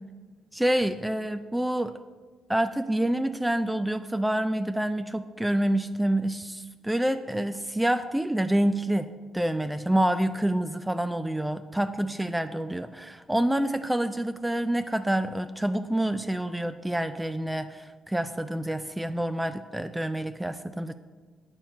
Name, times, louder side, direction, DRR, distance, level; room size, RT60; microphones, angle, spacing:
voice 1, 0.5-2.0 2.5-9.1 9.3-21.0, right 1 dB, 5° right, 10 dB, 0.3 m, -27 dB
8.0 x 4.4 x 6.2 m, 1.4 s
cardioid pair, 90°, 0 cm